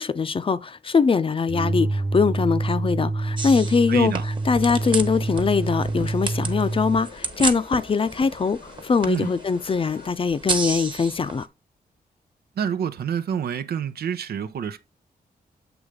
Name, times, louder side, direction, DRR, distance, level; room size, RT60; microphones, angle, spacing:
voice 1, 0.0-4.1 4.5-11.5, left 5 dB, 35° left, 0.5 m, -22 dB
sound 1, 1.5-7.1, right 2 dB, 15° right, 0.5 m, -27 dB
sound 2, 3.4-11.4, right 3 dB, 30° right, 1.2 m, -33 dB
voice 2, 3.9-4.2 9.1-9.3 12.6-14.8, right 8 dB, 90° right, 0.8 m, -27 dB
sound 3, 4.6-10.1, left 5 dB, 85° left, 1.2 m, -46 dB
8.0 x 3.2 x 5.0 m
wide cardioid pair, 130°, 16 cm